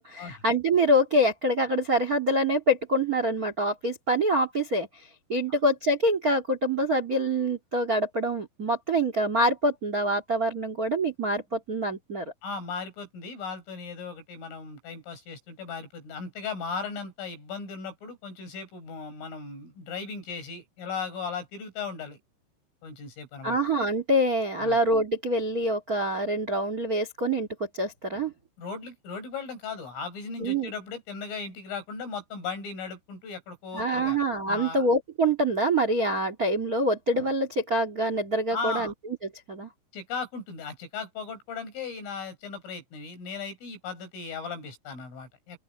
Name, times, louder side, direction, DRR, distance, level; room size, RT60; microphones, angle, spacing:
voice 1, 0.0-4.9 5.3-12.3 23.4-27.5 27.7-28.3 30.4-30.7 33.7-38.9 39.5-39.7, right 1 dB, 75° right, 0.8 m, -25 dB
voice 2, 12.4-22.2 22.8-23.6 24.6-24.8 28.6-34.2 34.5-34.8 38.5-38.9 39.9-45.6, left 5 dB, 80° left, 10.0 m, -37 dB
open air
omnidirectional pair, 5.7 m